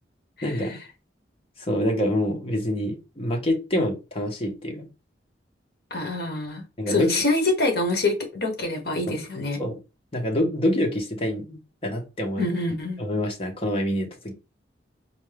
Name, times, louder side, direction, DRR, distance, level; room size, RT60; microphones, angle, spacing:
voice 1, 0.4-0.8 1.6-4.9 6.8-7.2 9.1-9.2 9.6-9.8 10.1-12.5 13.0-14.3, equal, 30° left, 0.9 m, -26 dB
voice 2, 5.9-9.6 12.4-13.0, left 2 dB, 60° left, 1.0 m, -25 dB
4.3 x 2.3 x 3.2 m
head